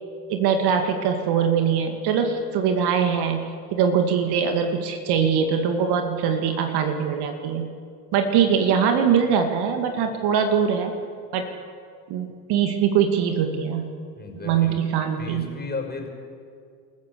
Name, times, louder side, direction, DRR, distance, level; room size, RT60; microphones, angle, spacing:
voice 1, 0.3-3.4 3.7-7.7 8.1-10.9 11.3-11.5 12.1-13.9 14.4-15.4, right 7 dB, 55° right, 5 dB, 2.4 m, -22 dB
voice 2, 14.2-14.8 15.2-16.1, left 4 dB, 20° left, 3 dB, 5.8 m, -34 dB
28.0 x 15.0 x 7.0 m, 2.2 s
hypercardioid pair, 75°, 48 cm